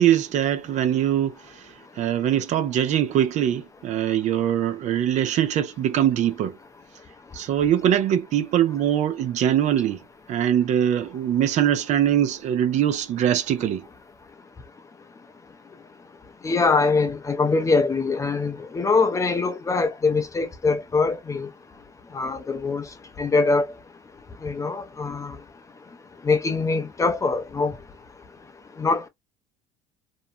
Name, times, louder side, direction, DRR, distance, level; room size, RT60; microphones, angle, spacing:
voice 1, 0.0-6.6 7.3-10.0 10.3-13.9, right 10 dB, 50° right, 0.5 m, -22 dB
voice 2, 16.4-21.5 22.1-22.8 23.2-23.7 24.4-25.4 26.2-27.7 28.8-29.1, left 4 dB, 20° left, 0.5 m, -23 dB
2.5 x 2.1 x 2.6 m
supercardioid pair, 105°, 16 cm